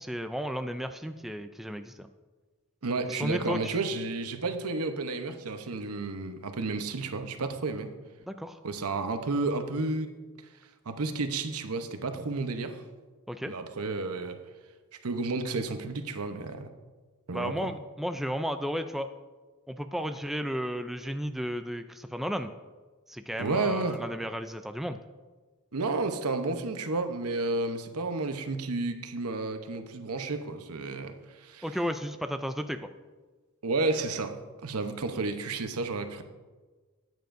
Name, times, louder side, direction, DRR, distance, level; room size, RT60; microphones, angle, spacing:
voice 1, 0.0-2.1 3.1-3.8 8.2-8.6 13.3-13.5 17.3-19.1 19.7-22.5 23.1-25.0 31.6-32.9, equal, ahead, 7 dB, 0.3 m, -33 dB
voice 2, 2.8-7.9 8.6-10.1 10.9-12.8 13.5-14.4 15.0-16.7 17.3-17.7 23.4-24.0 25.7-31.6 33.6-34.3 34.6-36.2, right 3 dB, 80° right, 7 dB, 0.8 m, -31 dB
14.0 x 9.2 x 2.6 m, 1.3 s
head